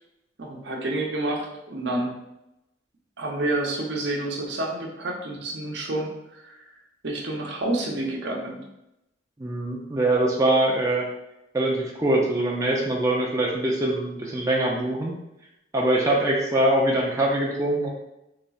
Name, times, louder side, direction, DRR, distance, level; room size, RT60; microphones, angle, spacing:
voice 1, 0.4-2.1 3.2-6.6 7.0-8.6, right 2 dB, 65° right, 0 dB, 0.7 m, -29 dB
voice 2, 9.4-11.0 11.5-15.1 15.7-17.9, right 1 dB, 15° right, -3 dB, 0.4 m, -23 dB
4.0 x 3.1 x 2.4 m, 0.88 s
head